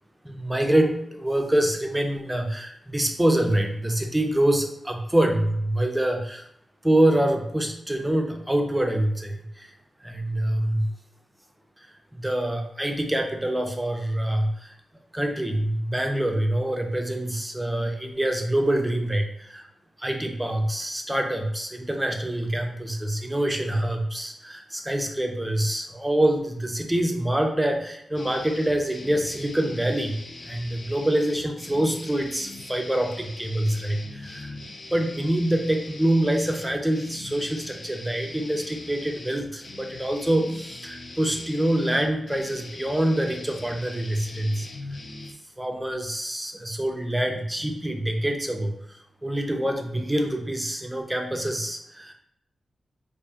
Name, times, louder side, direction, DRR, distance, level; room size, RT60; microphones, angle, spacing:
voice 1, 0.2-6.4 6.8-9.7 10.0-10.9 12.2-14.7 15.1-19.6 20.0-30.2 30.4-34.5 34.9-44.6 45.6-52.1, right 1 dB, 10° right, 3 dB, 0.5 m, -25 dB
sound 1, 28.1-45.3, left 2 dB, 55° left, 0.5 m, -42 dB
4.4 x 2.5 x 2.7 m, 0.71 s
wide cardioid pair, 115°, 0 cm